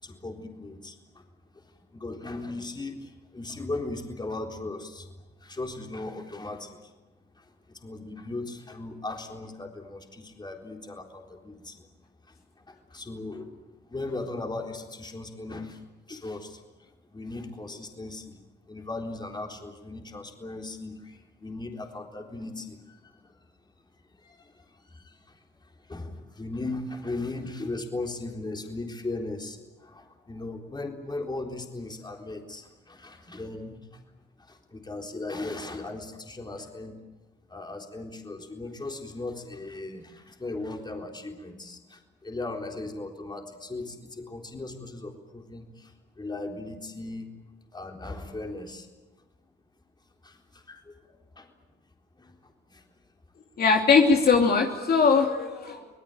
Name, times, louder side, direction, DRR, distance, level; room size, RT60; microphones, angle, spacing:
voice 1, 0.0-1.2 1.6-5.1 5.4-6.9 7.3-11.9 12.2-18.4 18.7-23.4 24.0-34.0 34.4-37.0 37.5-47.3 47.7-48.9 50.2-51.5 52.2-52.8, left 2 dB, 20° left, 2 dB, 3.9 m, -38 dB
voice 2, 53.6-55.9, left 5 dB, 50° left, 2 dB, 2.9 m, -21 dB
25.5 x 19.5 x 9.1 m, 1.1 s
cardioid pair, 90°, 20 cm